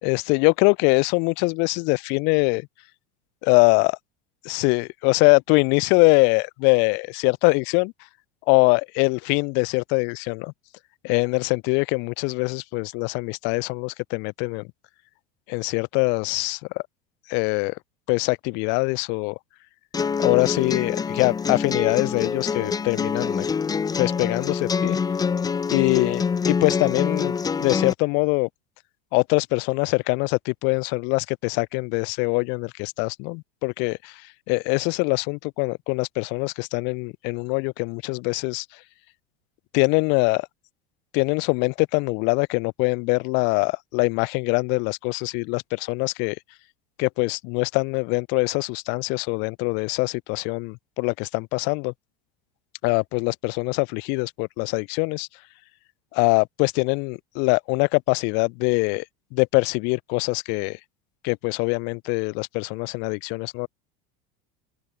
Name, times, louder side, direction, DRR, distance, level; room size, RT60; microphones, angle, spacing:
voice 1, 0.0-2.7 3.4-4.0 4.4-7.9 8.5-10.5 11.0-14.7 15.5-16.8 17.3-17.8 18.1-19.4 20.2-23.5 24.0-25.0 25.7-28.5 29.1-34.2 34.5-38.6 39.7-40.5 41.1-46.4 47.0-51.9 52.8-55.3 56.1-59.0 59.3-60.8 61.2-63.7, left 32 dB, 60° left, 1.1 m, -23 dB
sound 1, 19.9-27.9, left 6 dB, 15° left, 2.5 m, -25 dB
open air
supercardioid pair, 150°, 21 cm